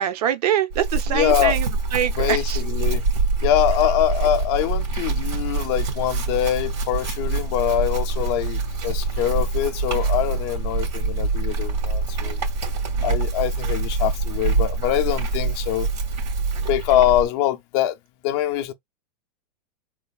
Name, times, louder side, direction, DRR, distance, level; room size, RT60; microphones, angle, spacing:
voice 1, 0.0-1.7 1.9-2.6, right 10 dB, 65° right, 0.8 m, -23 dB
Chewing mastication / Livestock farm animals working animals, 0.7-17.3, right 3 dB, 85° right, 2.6 m, -25 dB
voice 2, 1.1-1.6 2.2-3.1 3.4-12.4 13.0-15.9 16.6-18.0 18.2-18.7, left 12 dB, 40° left, 0.5 m, -23 dB
3.8 x 2.5 x 2.3 m
supercardioid pair, 145°, 21 cm